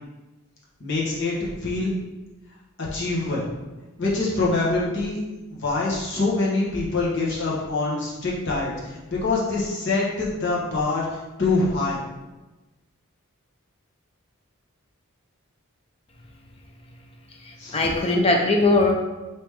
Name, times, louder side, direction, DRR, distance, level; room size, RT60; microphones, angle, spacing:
voice 1, 0.8-1.9 2.9-3.5 4.0-5.2 5.5-12.0 17.6-17.8, left 3 dB, 50° left, -6 dB, 1.3 m, -25 dB
voice 2, 17.4-18.9, left 2 dB, 25° left, 2 dB, 0.5 m, -20 dB
4.8 x 3.0 x 3.4 m, 1.1 s
head